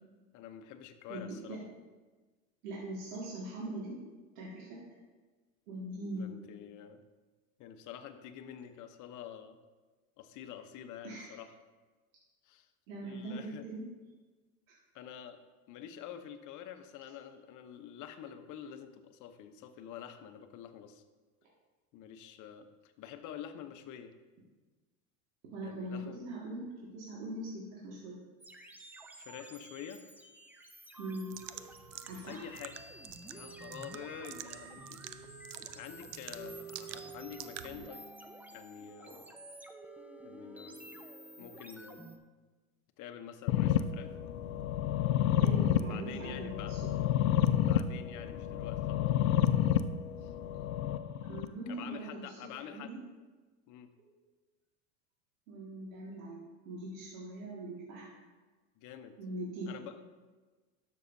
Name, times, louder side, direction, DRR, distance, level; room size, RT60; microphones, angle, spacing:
voice 1, 0.3-1.6 6.2-7.0 7.6-9.6 10.2-11.5 12.4-13.6 14.9-15.4 15.7-21.0 21.9-24.1 25.6-26.2 29.1-30.1 31.9-32.7 33.2-35.0 35.7-38.1 38.5-39.3 40.2-41.1 41.4-42.1 43.0-44.2 45.8-46.7 47.6-49.5 50.2-50.3 51.7-52.9 53.7-53.9 58.8-59.2 59.7-60.0, left 9 dB, 45° left, 8 dB, 0.9 m, -47 dB
voice 2, 1.1-1.6 2.6-3.9 4.4-4.7 5.7-6.3 11.0-11.3 12.9-13.8 25.5-28.2 31.0-31.3 32.1-32.4 34.2-34.3 39.1-39.2 45.4-46.8 51.3-52.4 52.7-53.0 55.5-56.4 56.7-58.1 59.2-59.7, right 1 dB, 75° right, -5 dB, 2.1 m, -41 dB
sound 1, 28.4-42.2, right 2 dB, 5° right, 0.5 m, -50 dB
sound 2, 31.3-37.9, right 12 dB, 50° right, 0.5 m, -48 dB
sound 3, 43.5-51.4, left 11 dB, 85° left, 0.6 m, -30 dB
12.5 x 6.4 x 2.7 m, 1.3 s
supercardioid pair, 105°, 41 cm